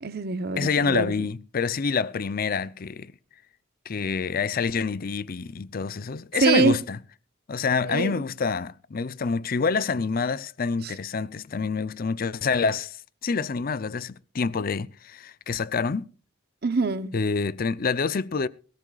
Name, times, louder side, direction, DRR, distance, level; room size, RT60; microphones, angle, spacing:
voice 1, 0.0-1.3 6.4-6.8 7.8-8.2 10.8-10.9 16.6-17.1, right 4 dB, 55° right, 0.8 m, -24 dB
voice 2, 0.6-3.1 3.9-7.0 7.5-13.0 13.2-16.1 17.1-18.5, left 5 dB, 45° left, 0.6 m, -27 dB
22.0 x 14.0 x 2.4 m
head